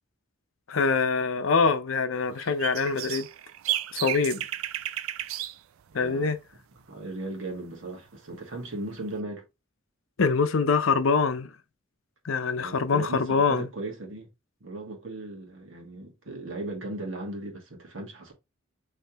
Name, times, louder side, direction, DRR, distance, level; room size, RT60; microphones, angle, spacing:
voice 1, 0.7-3.3 3.9-4.4 5.9-6.4 10.2-11.5 12.2-13.7, left 4 dB, 70° left, 0.6 m, -24 dB
sound 1, 2.3-5.6 5.9-6.1 9.0-9.1, right 13 dB, 80° right, 0.4 m, -33 dB
voice 2, 5.9-6.3 6.9-9.4 12.5-14.3 14.6-18.3, right 2 dB, 65° right, 1.5 m, -37 dB
5.4 x 3.2 x 2.9 m
head